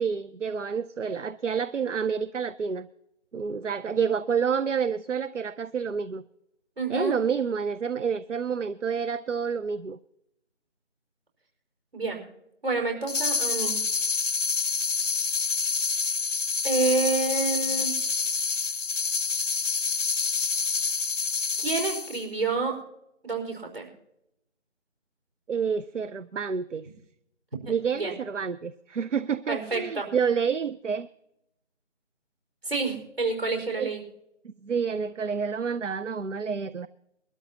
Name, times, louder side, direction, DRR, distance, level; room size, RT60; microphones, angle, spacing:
voice 1, 0.0-2.9 3.3-6.2 6.9-10.0 25.5-26.9 27.7-31.1 33.8-33.9 34.4-36.9, right 6 dB, 75° right, 14 dB, 0.6 m, -29 dB
voice 2, 6.8-7.2 11.9-12.2 12.6-13.8 16.6-17.9 21.6-22.8 23.2-23.9 27.9-28.1 29.5-30.1 32.6-34.0, right 3 dB, 55° right, 2 dB, 5.0 m, -28 dB
sound 1, 13.1-22.2, left 4 dB, 80° left, 0.7 m, -27 dB
22.5 x 12.5 x 2.9 m, 0.81 s
figure-of-eight pair, 170°, 37 cm